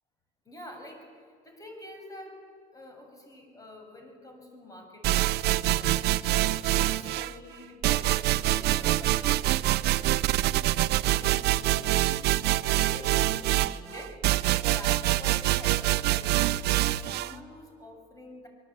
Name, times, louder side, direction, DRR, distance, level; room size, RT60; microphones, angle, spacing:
voice 1, 0.5-6.4 6.8-18.5, left 1 dB, 20° left, 4 dB, 7.0 m, -47 dB
sound 1, 5.0-7.3 7.8-17.3, right 16 dB, 75° right, 0.7 m, -25 dB
25.0 x 22.5 x 8.7 m, 2.1 s
cardioid pair, 110°, 17 cm